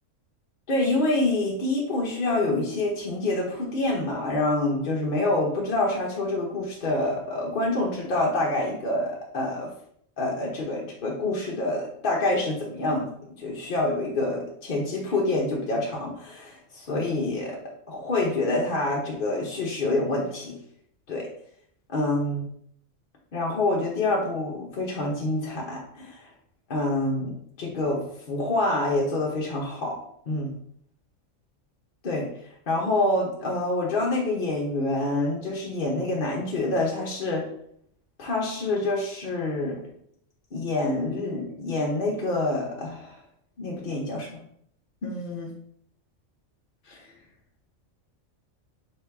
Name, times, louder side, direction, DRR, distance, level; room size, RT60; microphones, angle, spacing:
voice 1, 0.7-9.7 10.2-13.1 13.4-17.6 17.9-20.6 21.1-21.3 21.9-22.4 23.3-26.3 26.7-30.5 32.0-32.3 32.7-37.4 38.2-39.8 40.5-43.1 43.6-44.4 45.0-45.5 46.9-47.0, left 2 dB, 50° left, -2 dB, 0.8 m, -27 dB
3.4 x 2.8 x 4.5 m, 0.67 s
omnidirectional pair, 1.3 m